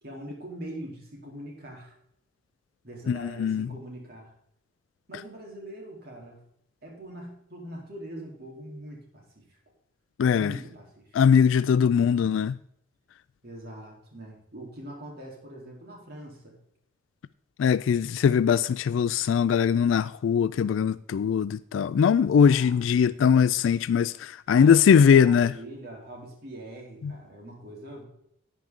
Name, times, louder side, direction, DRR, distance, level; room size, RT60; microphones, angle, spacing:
voice 1, 0.0-1.9 2.8-4.3 5.1-6.4 6.8-9.4 10.3-11.2 11.9-12.1 13.4-16.6 22.2-23.1 24.5-28.1, right 1 dB, 55° right, 3.4 m, -42 dB
voice 2, 3.1-3.7 10.2-10.6 11.1-12.6 17.6-25.5 27.0-27.1, left 7 dB, 80° left, 0.3 m, -21 dB
12.0 x 8.9 x 3.7 m
head